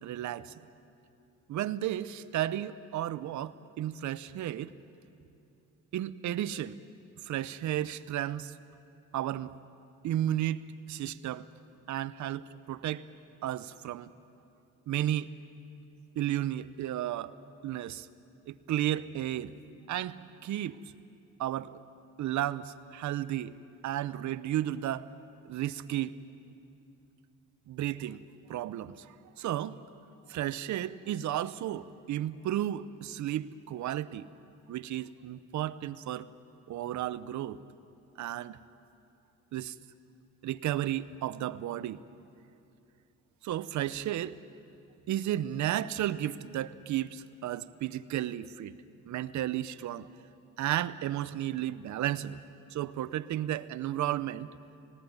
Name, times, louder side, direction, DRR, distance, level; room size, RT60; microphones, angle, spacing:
voice 1, 0.0-0.6 1.5-4.7 5.9-6.7 7.2-8.5 9.1-9.5 10.0-10.6 10.9-11.5 11.9-13.1 13.4-14.1 14.9-15.3 16.2-17.3 17.6-18.1 18.5-19.5 19.9-20.8 21.4-21.8 22.2-23.5 23.8-25.1 25.4-26.2 27.7-29.8 30.3-34.3 34.7-36.3 36.7-37.6 38.2-38.6 39.5-39.7 40.4-42.0 43.4-44.4 45.1-48.8 49.1-50.1 50.6-52.4 52.7-54.5, right 12 dB, 70° right, 16 dB, 0.7 m, -33 dB
19.5 x 17.0 x 9.4 m, 2.6 s
cardioid pair, 90°, 30 cm